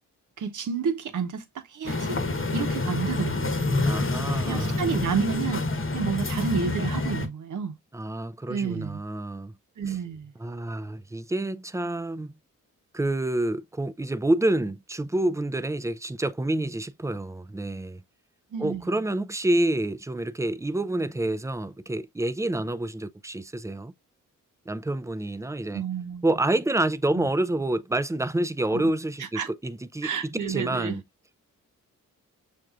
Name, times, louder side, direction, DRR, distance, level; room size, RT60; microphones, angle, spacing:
voice 1, 0.4-2.2 2.5-3.6 4.4-7.7 8.5-9.0 9.8-10.3 18.5-18.9 25.7-26.3 27.1-27.3 28.7-28.9 29.2-29.5 30.0-31.0, right 6 dB, 70° right, 0.9 m, -30 dB
sound 1, 1.9-7.3, left 2 dB, 40° left, 1.0 m, -27 dB
voice 2, 3.9-4.8 7.9-9.5 10.4-12.3 12.9-18.0 18.6-23.9 24.7-25.8 26.2-31.0, right 1 dB, 10° right, 0.4 m, -28 dB
6.4 x 2.6 x 2.3 m
cardioid pair, 55°, 32 cm